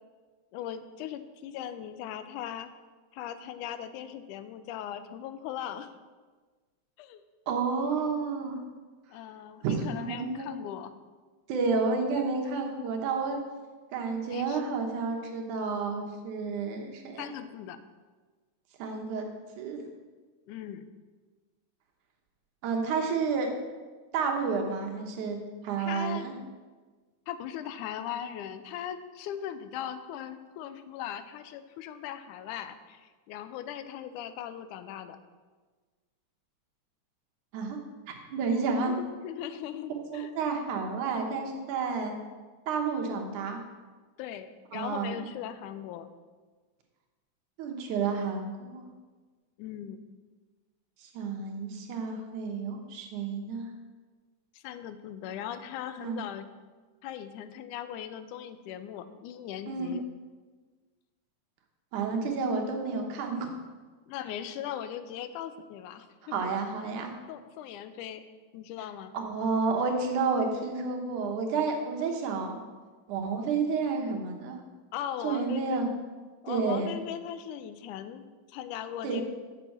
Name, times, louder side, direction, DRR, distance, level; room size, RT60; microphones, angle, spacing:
voice 1, 0.5-2.7 3.1-5.9 7.0-7.2 9.1-11.0 14.3-14.8 17.2-17.8 20.5-20.9 25.8-26.3 27.3-35.2 38.9-40.3 44.2-46.1 49.6-50.0 54.5-56.5 57.0-60.1 64.1-66.5 67.3-68.2 68.5-69.1 74.9-75.8 76.4-79.2, left 10 dB, 85° left, 11 dB, 2.1 m, -39 dB
voice 2, 7.5-8.6 9.6-10.5 11.5-13.4 13.9-17.3 18.8-19.3 19.6-19.8 22.6-23.6 24.1-25.4 25.6-26.4 37.5-37.8 38.1-38.9 40.1-42.1 42.7-43.6 44.7-45.2 47.6-48.9 51.0-53.7 56.0-56.2 59.7-59.9 61.9-63.5 66.3-67.1 69.1-72.6 73.1-74.6 75.2-75.9 76.5-77.0 79.0-79.2, right 4 dB, 80° right, 2 dB, 2.5 m, -30 dB
6.8 x 6.2 x 7.1 m, 1.4 s
omnidirectional pair, 3.5 m